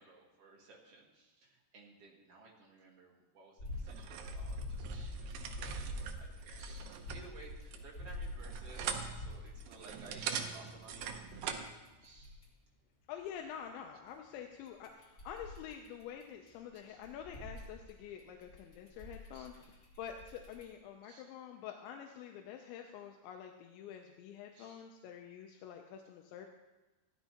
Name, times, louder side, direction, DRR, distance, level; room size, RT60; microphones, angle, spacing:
voice 1, 0.0-5.6 5.9-11.4 12.0-12.4 16.9-17.0 19.3-19.5 21.0-21.2 24.5-24.8, right 3 dB, 70° right, -2 dB, 1.4 m, -57 dB
sound 1, 3.6-12.4 14.7-16.5 16.7-20.6, left 1 dB, 30° left, 2.3 m, -45 dB
sound 2, 3.8-11.7, right 7 dB, 85° right, 2.0 m, -43 dB
voice 2, 13.1-26.5, left 9 dB, 85° left, 3 dB, 3.0 m, -47 dB
15.0 x 11.5 x 2.9 m, 1.1 s
omnidirectional pair, 5.2 m